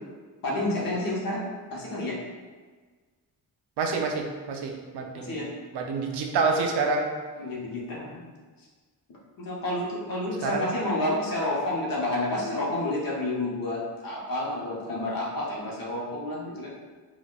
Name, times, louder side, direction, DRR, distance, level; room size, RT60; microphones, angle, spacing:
voice 1, 0.4-1.4 1.7-2.2 5.1-5.5 7.4-8.3 9.4-16.7, left 1 dB, 60° left, -4 dB, 0.8 m, -30 dB
voice 2, 3.8-5.5 5.7-7.1 10.4-10.7, right 4 dB, 85° right, 2 dB, 0.6 m, -27 dB
4.0 x 2.2 x 2.2 m, 1.4 s
wide cardioid pair, 145°, 39 cm